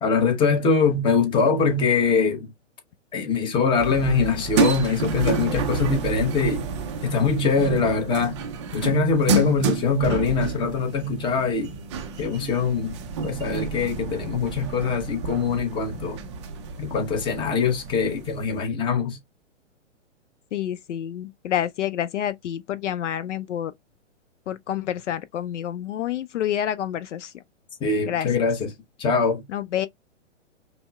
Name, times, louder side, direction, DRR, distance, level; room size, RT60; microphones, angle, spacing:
voice 1, 0.0-2.5 3.1-6.6 7.0-8.4 8.7-11.7 12.2-13.0 13.2-16.2 16.8-19.2 27.8-28.7 29.0-29.4, left 4 dB, 15° left, 0.7 m, -23 dB
sound 1, 3.8-18.6, right 4 dB, 25° right, 0.4 m, -29 dB
voice 2, 20.5-23.7 24.5-27.3 28.1-28.3 29.5-29.9, left 10 dB, 70° left, 0.5 m, -28 dB
5.2 x 2.0 x 2.2 m
hypercardioid pair, 125°, 38 cm